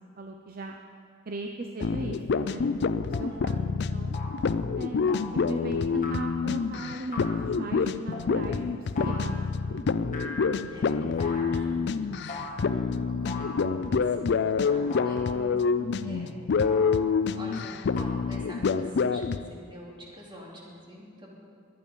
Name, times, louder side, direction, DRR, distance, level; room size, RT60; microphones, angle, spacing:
voice 1, 0.2-0.8 1.3-2.6 3.0-4.2 4.7-9.9 12.9-13.3 15.3-16.2, right 2 dB, 50° right, 3 dB, 0.7 m, -39 dB
sound 1, 1.8-19.5, left 5 dB, 60° left, 0.4 m, -27 dB
sound 2, 2.4-2.5 3.1-3.4 4.1-4.5 5.1-5.5 6.0-6.5 7.1-7.5 8.1-8.4 8.9-9.4 10.1-10.8 11.2-11.6 12.3-12.8 13.2-13.9 14.9-15.6 16.6-17.3 17.9-18.0, left 3 dB, 45° left, 1.9 m, -40 dB
voice 2, 3.2-3.8 10.7-12.3 12.7-15.2 16.0-16.3 17.3-21.3, equal, 25° right, -4 dB, 3.3 m, -46 dB
22.0 x 8.9 x 5.4 m, 2.4 s
head